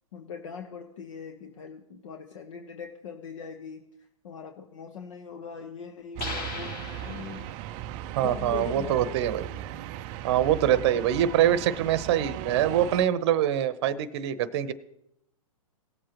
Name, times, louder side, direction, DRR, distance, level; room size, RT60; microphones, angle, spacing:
voice 1, 0.1-3.9 4.2-7.5 8.2-9.5, left 6 dB, 60° left, 6 dB, 1.0 m, -41 dB
sound 1, 6.2-7.7, left 3 dB, 30° left, 3.5 m, -38 dB
sound 2, 6.2-13.1, right 12 dB, 30° right, 0.4 m, -37 dB
voice 2, 8.2-9.5 10.2-14.7, right 11 dB, 50° right, 15 dB, 0.8 m, -24 dB
18.5 x 7.5 x 3.0 m, 0.80 s
hypercardioid pair, 130°, 18 cm